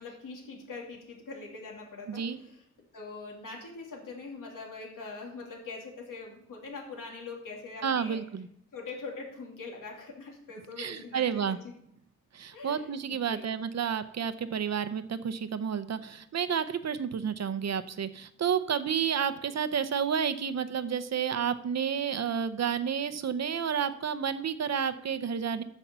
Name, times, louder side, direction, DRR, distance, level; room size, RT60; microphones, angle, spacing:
voice 1, 0.0-2.6 2.9-8.2 8.7-11.6 12.5-13.5, left 3 dB, 85° left, -1 dB, 2.8 m, -43 dB
voice 2, 2.1-2.4 7.8-8.5 10.8-11.6 12.3-25.6, right 7 dB, 55° right, 12 dB, 0.7 m, -30 dB
8.6 x 7.2 x 6.8 m, 0.71 s
wide cardioid pair, 160°, 31 cm